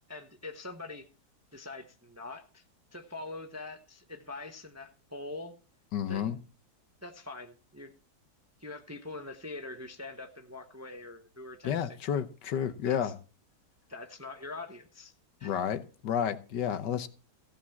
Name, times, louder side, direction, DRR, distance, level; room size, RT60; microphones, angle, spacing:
voice 1, 0.1-1.1 1.5-2.6 2.9-5.6 6.1-6.4 7.0-7.9 8.6-12.0 12.8-13.1 13.9-15.1 15.4-15.6, left 2 dB, 15° right, 0.6 m, -43 dB
voice 2, 5.9-6.4 11.6-13.1 15.4-17.1, left 8 dB, 75° left, 1.6 m, -31 dB
15.0 x 5.3 x 7.0 m
omnidirectional pair, 1.9 m